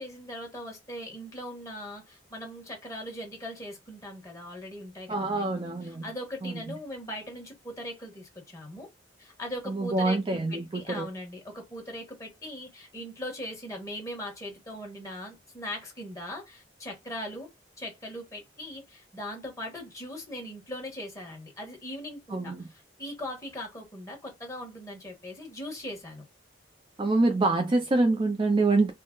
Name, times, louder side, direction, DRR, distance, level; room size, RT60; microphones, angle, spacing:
voice 1, 0.0-8.9 9.2-17.5 17.8-26.2, left 1 dB, 15° left, 1.5 m, -40 dB
voice 2, 5.1-6.0 6.4-6.5 9.7-11.0 22.3-22.7 27.0-28.9, right 2 dB, 25° right, 0.4 m, -25 dB
3.7 x 2.1 x 3.7 m
head